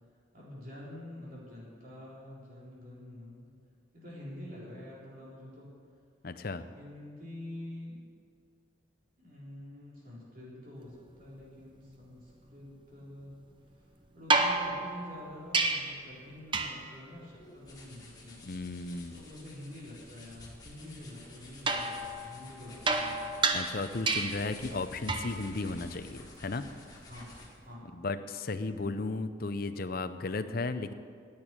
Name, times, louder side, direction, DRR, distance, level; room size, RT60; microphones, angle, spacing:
voice 1, 0.3-3.5 3.9-5.7 6.7-8.0 9.2-13.4 13.7-18.5 19.1-23.3 27.1-27.3 27.6-27.9, left 1 dB, 45° right, -7 dB, 4.2 m, -47 dB
voice 2, 6.2-6.6 18.4-19.1 23.5-26.6 27.9-30.9, left 3 dB, 45° left, 10 dB, 0.6 m, -35 dB
sound 1, 14.3-16.1 16.5-17.0 21.7-24.5 25.1-25.4 27.4-27.5, right 3 dB, 25° right, 0.7 m, -30 dB
sound 2, 17.3-27.7, left 2 dB, 20° left, 1.9 m, -51 dB
10.5 x 8.8 x 9.0 m, 2.1 s
head